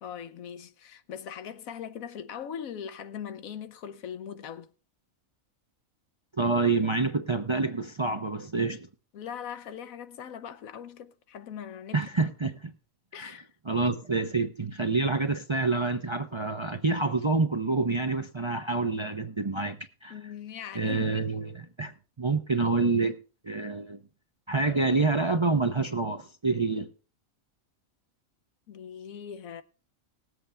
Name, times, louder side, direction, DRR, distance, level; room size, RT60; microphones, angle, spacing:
voice 1, 0.0-4.7 9.1-12.1 13.1-13.5 20.1-21.1 28.7-29.6, left 8 dB, 85° left, 1.2 m, -40 dB
voice 2, 6.4-8.9 11.9-12.7 13.1-13.4 13.7-20.1 20.7-23.2 23.4-24.0 24.5-26.9, right 3 dB, 30° right, 0.5 m, -27 dB
19.5 x 7.9 x 3.3 m
omnidirectional pair, 1.4 m